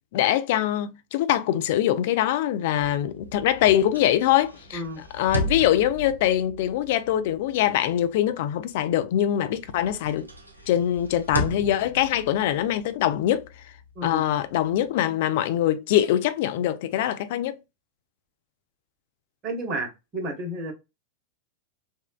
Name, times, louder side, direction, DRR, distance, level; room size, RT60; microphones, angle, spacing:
voice 1, 0.1-4.8 5.1-10.3 10.7-13.5 14.0-17.6, left 12 dB, 50° left, 0.3 m, -23 dB
sound 1, 2.8-9.2 9.5-14.9, equal, 85° right, 0.5 m, -36 dB
voice 2, 4.7-5.0 13.9-14.2 19.4-20.7, right 1 dB, 30° right, 0.9 m, -31 dB
3.5 x 2.1 x 2.2 m
figure-of-eight pair, 90°, 0 cm